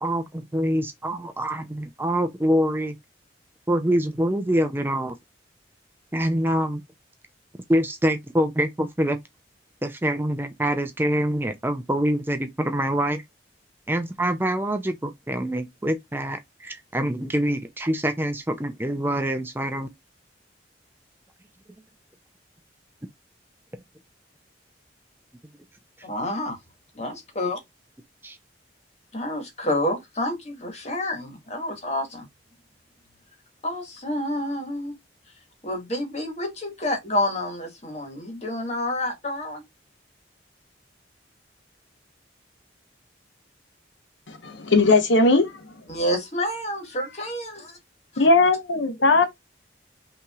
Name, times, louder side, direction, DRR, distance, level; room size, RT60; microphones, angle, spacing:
voice 1, 0.0-3.0 3.7-5.2 6.1-6.8 7.7-9.2 9.8-13.2 13.9-19.9 28.2-28.4, equal, 10° right, 0.5 m, -25 dB
voice 2, 26.0-26.6 26.9-27.6 29.1-32.3 33.6-34.9 35.6-39.6 45.9-47.8 48.1-48.3, left 1 dB, 35° left, 1.7 m, -29 dB
voice 3, 44.4-45.6 48.2-49.3, left 3 dB, 75° left, 1.0 m, -18 dB
5.7 x 3.0 x 2.3 m
head